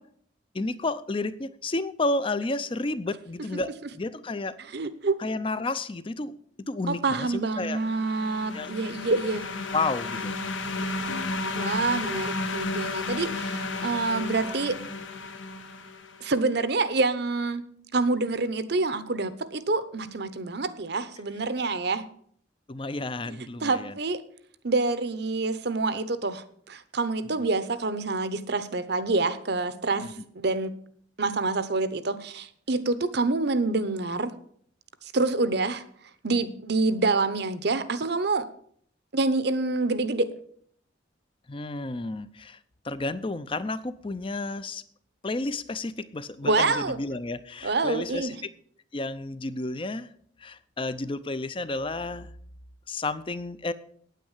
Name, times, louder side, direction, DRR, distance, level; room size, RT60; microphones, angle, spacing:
voice 1, 0.5-4.6 5.2-6.4 6.7-7.8 8.5-8.7 9.7-10.3 22.7-23.9 27.3-27.5 30.0-30.1 41.5-42.6 42.8-44.8 45.2-48.4 48.9-50.1 50.4-52.3 52.9-53.7, left 2 dB, 25° left, 14 dB, 0.6 m, -31 dB
voice 2, 4.7-5.2 6.9-9.5 11.1-14.8 16.2-22.1 23.2-23.3 23.6-24.2 24.6-30.7 31.2-34.3 35.0-35.8 36.2-38.5 39.1-40.3 46.4-47.0 47.6-48.3, right 3 dB, 55° right, 14 dB, 0.9 m, -27 dB
sound 1, 7.7-16.3, left 3 dB, 80° left, 1.2 m, -33 dB
9.3 x 9.0 x 7.3 m, 0.62 s
head